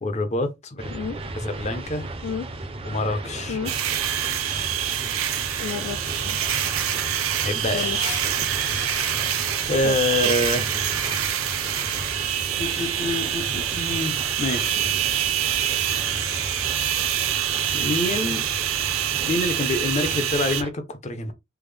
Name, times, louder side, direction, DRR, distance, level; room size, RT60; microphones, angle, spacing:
voice 1, 0.0-1.0 1.3-2.1 2.8-3.7 7.4-8.0 9.7-10.8 12.6-15.0 17.7-18.5 19.3-21.3, left 2 dB, 35° left, 0.6 m, -27 dB
sound 1, 0.8-20.7, right 2 dB, 30° right, 0.5 m, -35 dB
sound 2, 3.7-20.6, right 10 dB, 80° right, 0.5 m, -26 dB
voice 2, 5.6-6.6 7.7-8.0 9.8-9.9 10.5-10.6, left 7 dB, 75° left, 0.3 m, -31 dB
sound 3, 7.7-10.1 10.6-13.5, left 5 dB, 50° left, 0.9 m, -40 dB
3.4 x 2.0 x 3.3 m
head